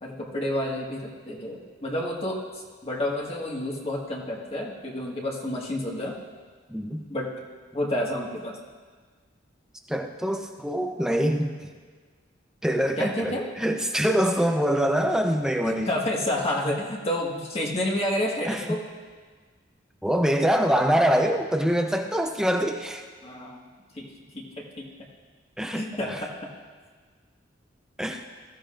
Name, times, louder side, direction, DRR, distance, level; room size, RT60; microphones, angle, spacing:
voice 1, 0.0-6.1 7.1-7.3 7.7-8.6 13.0-13.4 15.6-18.8 23.2-23.6 24.0-24.1 24.3-24.4 24.8-24.9 25.7-26.3, left 1 dB, 30° left, -2 dB, 1.7 m, -29 dB
voice 2, 6.7-7.0 9.9-11.5 12.6-15.9 18.5-18.6 20.0-23.0 25.6-26.2 28.0-28.2, equal, 5° right, 3 dB, 0.6 m, -24 dB
21.0 x 14.5 x 2.6 m, 1.5 s
head